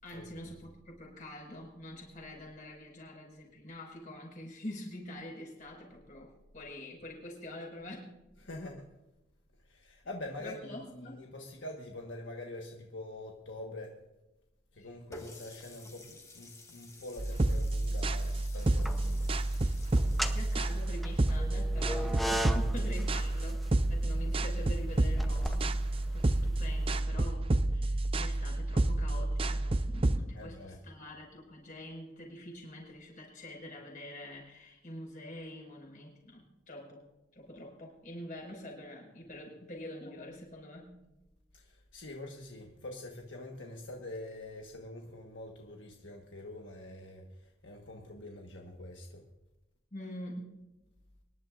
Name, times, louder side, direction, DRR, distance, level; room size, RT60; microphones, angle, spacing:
voice 1, 0.0-8.1 10.4-11.2 14.8-14.9 20.3-37.1 37.3-40.9 49.9-50.6, left 1 dB, 45° left, -1 dB, 5.4 m, -45 dB
voice 2, 8.4-8.9 9.6-14.0 14.7-19.3 30.3-30.8 41.5-49.2, left 1 dB, 80° left, 1 dB, 1.4 m, -45 dB
Water tap faucet, 15.1-20.9, left 2 dB, 15° left, 1.5 m, -53 dB
sound 1, 17.2-30.2, right 2 dB, 30° right, 0.5 m, -29 dB
sound 2, 18.6-19.3 20.0-26.9, equal, ahead, 0.7 m, -38 dB
25.0 x 11.0 x 2.5 m, 1.0 s
head